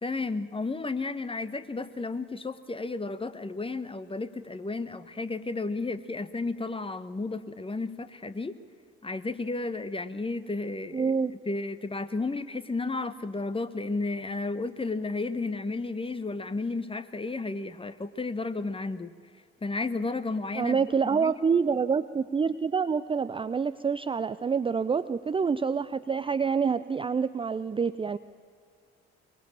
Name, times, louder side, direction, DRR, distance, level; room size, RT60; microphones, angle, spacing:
voice 1, 0.0-8.6 9.0-11.2 11.5-19.1 19.6-21.4, left 3 dB, 15° left, 12 dB, 1.3 m, -33 dB
voice 2, 10.9-11.3 20.6-28.2, right 5 dB, 15° right, 13 dB, 0.5 m, -27 dB
23.5 x 21.0 x 8.9 m, 2.3 s
figure-of-eight pair, 50°, 34 cm